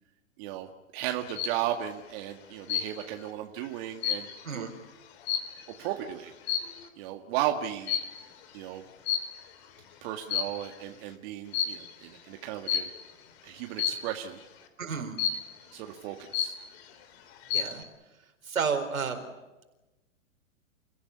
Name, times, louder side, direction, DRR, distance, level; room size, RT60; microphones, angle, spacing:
voice 1, 0.4-4.7 5.8-6.4 7.0-8.0 8.5-8.8 10.0-12.9 13.4-14.4 14.8-15.0 15.7-16.5, right 12 dB, 45° right, 4 dB, 2.0 m, -35 dB
sound 1, 1.0-1.6 2.7-3.2 3.6-5.9 6.4-6.9 7.9-8.3 9.1-9.7 10.1-10.8 11.5-11.9 12.7-13.1 13.8-14.2 15.2-15.7 16.1-16.2 16.3-16.9 17.3-17.8, left 8 dB, 50° left, 3.7 m, -31 dB
voice 2, 14.8-15.2 17.5-17.8 18.4-19.2, right 6 dB, 80° right, 6 dB, 4.7 m, -31 dB
29.5 x 15.5 x 9.8 m, 1.1 s
hypercardioid pair, 115°, 40 cm